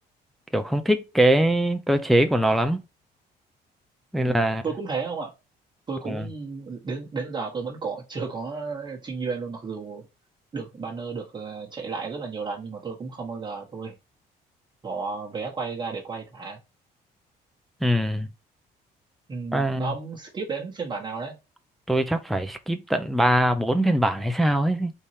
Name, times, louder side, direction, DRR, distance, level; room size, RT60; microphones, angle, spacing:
voice 1, 0.5-2.8 4.1-4.6 6.1-6.2 17.8-18.3 19.5-19.9 21.9-24.9, right 1 dB, ahead, 0.5 m, -22 dB
voice 2, 4.2-5.3 5.9-10.1 10.5-13.9 14.8-16.6 19.3-21.4, right 4 dB, 25° right, 1.2 m, -33 dB
4.1 x 3.6 x 3.1 m
cardioid pair, 110°, 17 cm